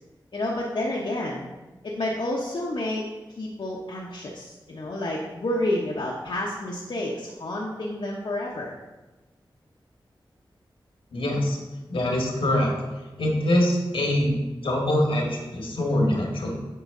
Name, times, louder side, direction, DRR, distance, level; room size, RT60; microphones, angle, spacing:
voice 1, 0.3-1.5 1.8-3.0 3.4-8.7, left 1 dB, 70° left, -4 dB, 1.0 m, -29 dB
voice 2, 11.1-11.6 11.9-12.7 13.2-16.5, left 1 dB, 85° left, 0 dB, 1.7 m, -24 dB
8.7 x 4.8 x 3.8 m, 1.1 s
cardioid pair, 55°, 9 cm